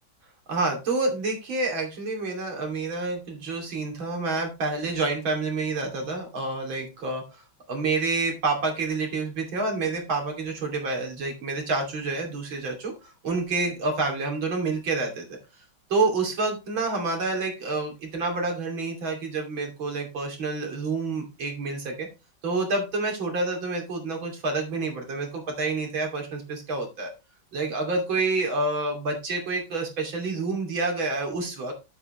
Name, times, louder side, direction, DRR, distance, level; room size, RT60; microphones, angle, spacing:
voice 1, 0.5-7.4 7.7-15.2 15.9-22.1 22.4-27.1 27.5-31.7, right 3 dB, 70° right, 2 dB, 3.5 m, -28 dB
8.9 x 8.3 x 3.2 m, 0.27 s
omnidirectional pair, 2.2 m